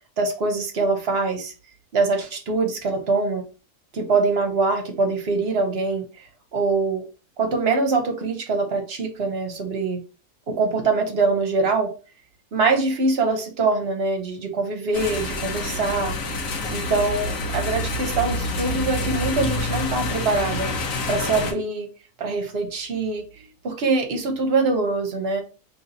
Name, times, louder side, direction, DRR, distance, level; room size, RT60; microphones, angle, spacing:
voice 1, 0.2-1.5 1.9-3.4 3.9-7.0 7.4-10.0 10.5-11.9 12.5-16.2 16.7-20.7 21.1-21.9 22.2-25.4, right 3 dB, 55° right, 4 dB, 1.0 m, -23 dB
sound 1, 14.9-21.5, left 2 dB, 85° left, 1.2 m, -27 dB
3.0 x 2.7 x 4.0 m, 0.33 s
omnidirectional pair, 1.4 m